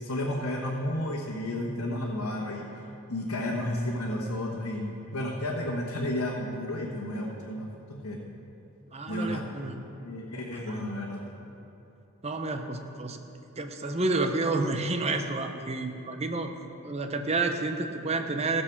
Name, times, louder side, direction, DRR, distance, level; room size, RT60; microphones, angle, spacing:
voice 1, 0.0-2.7 3.1-8.2 9.1-9.4 10.0-11.2, left 1 dB, 90° left, -4 dB, 1.3 m, -32 dB
voice 2, 8.9-9.8 10.7-10.8 12.2-13.2 13.6-16.5 16.8-18.6, right 3 dB, 30° right, 6 dB, 0.7 m, -30 dB
15.5 x 6.9 x 5.9 m, 2.8 s
head